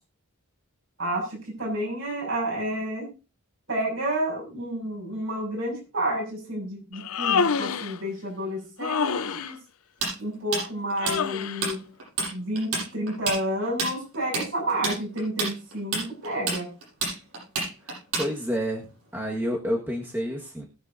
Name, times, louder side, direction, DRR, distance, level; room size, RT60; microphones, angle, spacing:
voice 1, 1.0-3.1 3.7-9.6 10.2-11.8 12.3-16.7, right 1 dB, 65° right, -1 dB, 7.0 m, -30 dB
Human voice, 6.9-8.0 8.8-9.5 11.0-11.7, left 6 dB, 80° left, 0.7 m, -27 dB
Tools, 10.0-11.7 12.0-12.3 12.6-18.6, right 4 dB, 90° right, 7.6 m, -28 dB
voice 2, 17.9-18.8 19.1-20.6, equal, 10° right, -1 dB, 1.7 m, -29 dB
21.0 x 7.9 x 2.8 m, 0.30 s
head